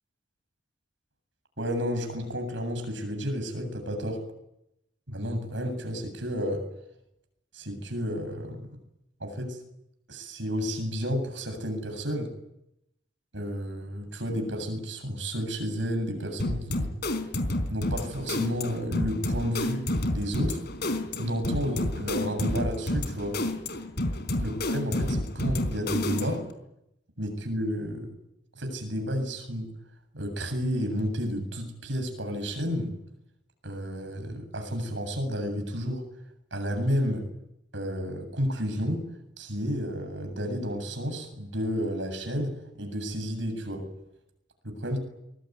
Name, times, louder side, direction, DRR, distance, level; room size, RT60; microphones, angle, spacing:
voice 1, 1.6-4.2 5.1-6.6 7.5-8.6 9.2-9.6 10.1-12.3 13.3-16.9 17.7-20.6 21.2-23.4 24.4-26.4 27.2-28.1 28.6-29.7 30.1-32.9 33.6-36.0 36.5-37.3 37.7-39.1 39.4-42.5 42.8-43.9 44.6-45.0, equal, 85° right, 6 dB, 7.9 m, -31 dB
sound 1, 16.4-26.5, left 1 dB, 60° left, 4.2 m, -30 dB
24.5 x 22.0 x 9.6 m, 0.83 s
head